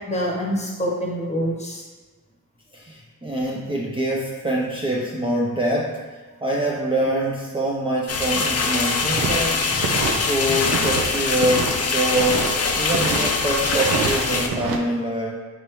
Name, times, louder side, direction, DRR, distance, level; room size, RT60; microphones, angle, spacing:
voice 1, 0.0-1.8 9.1-9.2 9.8-9.9, equal, 20° left, -2 dB, 0.9 m, -26 dB
voice 2, 2.7-9.7 10.3-12.5 12.8-15.4, right 1 dB, 15° right, -4 dB, 0.4 m, -25 dB
sound 1, 8.1-14.5, left 4 dB, 50° left, 0.5 m, -23 dB
sound 2, 9.1-10.2 10.5-11.0 11.3-12.5 12.9-13.3 13.6-14.8, right 5 dB, 90° right, 0.5 m, -27 dB
4.2 x 3.4 x 2.9 m, 1.3 s
cardioid pair, 85°, 33 cm